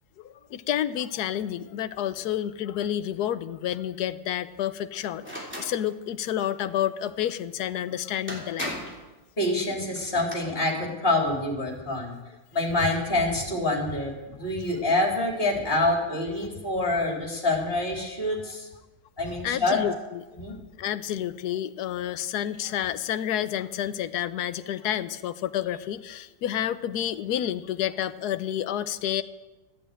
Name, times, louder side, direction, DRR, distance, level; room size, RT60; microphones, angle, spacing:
voice 1, 0.2-8.7 19.4-20.2 20.8-29.2, left 11 dB, 70° left, 12 dB, 1.2 m, -29 dB
sound 1, 5.2-5.7 7.8-7.9 8.3-9.0 10.0-10.3, equal, 5° right, 3.1 m, -35 dB
voice 2, 9.4-12.2 12.5-18.7 19.2-19.8 20.3-20.6, left 2 dB, 35° left, -1 dB, 3.5 m, -26 dB
14.0 x 8.7 x 9.0 m, 1.1 s
omnidirectional pair, 1.8 m